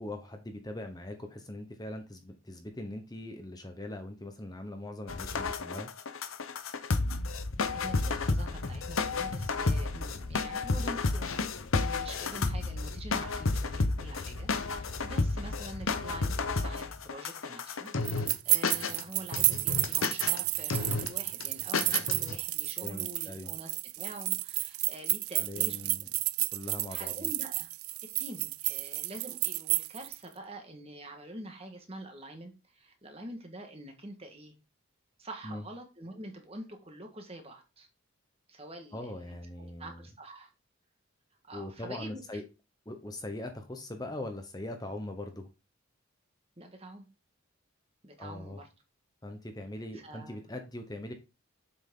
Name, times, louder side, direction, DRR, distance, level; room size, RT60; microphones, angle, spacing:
voice 1, 0.0-5.9 22.8-23.5 25.4-26.1 26.5-27.3 35.4-35.6 38.9-40.1 41.5-42.4 42.9-45.5 48.2-48.6 49.2-51.1, left 1 dB, 20° left, 0.9 m, -41 dB
sound 1, 5.1-18.3 18.6-19.0 19.3-20.4 20.7-21.1 21.4-21.5 21.7-22.4, left 3 dB, 75° left, 0.9 m, -31 dB
voice 2, 7.7-11.4 11.7-25.9 26.9-27.7 28.0-34.5 35.2-37.9 38.5-40.5 41.5-42.4 46.6-47.1 48.0-48.7 49.9-50.4, right 1 dB, 30° right, 1.6 m, -46 dB
sound 2, 18.1-30.2, right 21 dB, 90° right, 0.4 m, -31 dB
7.6 x 6.1 x 3.8 m
head